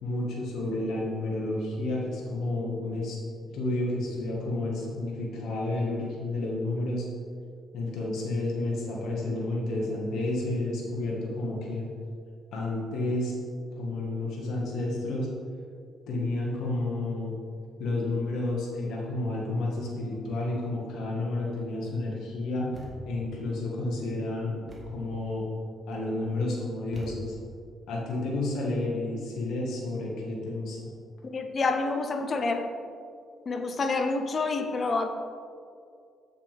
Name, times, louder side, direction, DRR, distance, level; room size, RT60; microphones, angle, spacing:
voice 1, 0.0-3.2 3.5-7.0 7.7-11.9 12.5-13.4 13.8-15.3 16.1-17.3 17.8-22.7 23.0-25.4 25.9-27.3 27.9-30.8, left 2 dB, 80° left, -3 dB, 1.7 m, -31 dB
Thump thud, 22.7-23.3 24.7-25.1 26.9-27.6, left 1 dB, 30° right, 1.6 m, -44 dB
voice 2, 31.2-32.7 33.5-35.1, left 3 dB, 40° left, 7 dB, 0.7 m, -28 dB
7.5 x 6.5 x 3.5 m, 2.3 s
cardioid pair, 90°, 0 cm